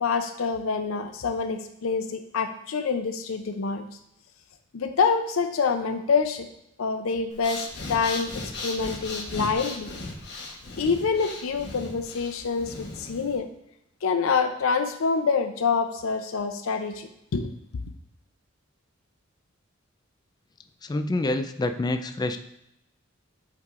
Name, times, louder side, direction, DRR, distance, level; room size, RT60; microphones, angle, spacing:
voice 1, 0.0-3.9 4.7-6.5 6.8-8.3 8.6-9.9 10.8-13.5 14.0-17.5, left 5 dB, 85° left, 7 dB, 0.5 m, -26 dB
Breathing, 7.3-13.4, left 2 dB, 60° left, 1.0 m, -37 dB
voice 2, 20.8-22.4, left 2 dB, 20° left, 8 dB, 0.3 m, -27 dB
8.2 x 4.7 x 2.4 m, 0.81 s
head